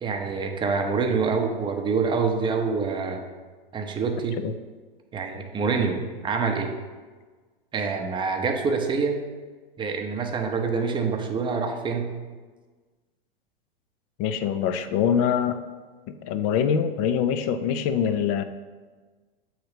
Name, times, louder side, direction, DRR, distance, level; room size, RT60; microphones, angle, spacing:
voice 1, 0.0-3.2 3.7-4.4 5.1-6.7 7.7-9.2 9.8-12.1, right 5 dB, 15° right, 4 dB, 0.7 m, -26 dB
voice 2, 14.2-15.6 16.1-18.4, left 8 dB, 40° left, 10 dB, 0.5 m, -24 dB
7.8 x 3.2 x 4.9 m, 1.4 s
hypercardioid pair, 110°, 29 cm